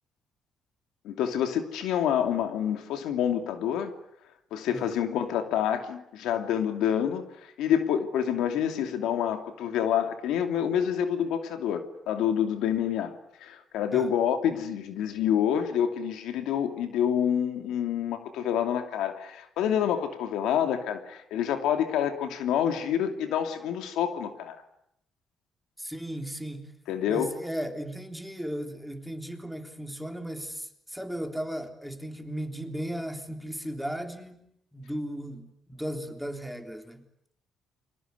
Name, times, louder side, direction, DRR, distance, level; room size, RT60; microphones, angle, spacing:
voice 1, 1.0-3.9 4.5-7.2 7.6-13.1 13.4-24.6 26.9-27.3, left 9 dB, 90° left, 7 dB, 2.7 m, -27 dB
voice 2, 25.8-26.8 27.1-34.5 34.7-37.1, equal, ahead, 5 dB, 3.6 m, -36 dB
29.5 x 24.0 x 8.2 m, 0.74 s
cardioid pair, 90°, 0 cm